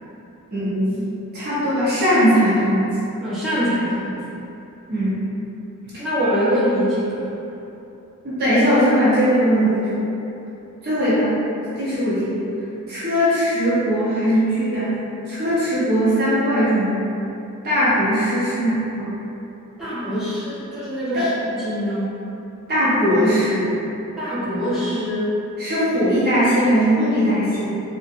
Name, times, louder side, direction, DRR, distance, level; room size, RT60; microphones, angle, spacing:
voice 1, 0.5-1.1 1.3-3.0 4.9-5.2 5.9-6.0 8.2-10.0 10.8-11.3 11.8-12.4 12.9-14.9 15.3-17.1 17.6-19.1 21.1-21.3 22.7-23.7 25.6-27.7, equal, 50° right, -11 dB, 0.9 m, -19 dB
voice 2, 3.2-4.2 6.0-7.3 19.8-22.1 24.2-25.3, equal, ahead, -15 dB, 1.1 m, -23 dB
4.0 x 2.4 x 2.5 m, 2.8 s
head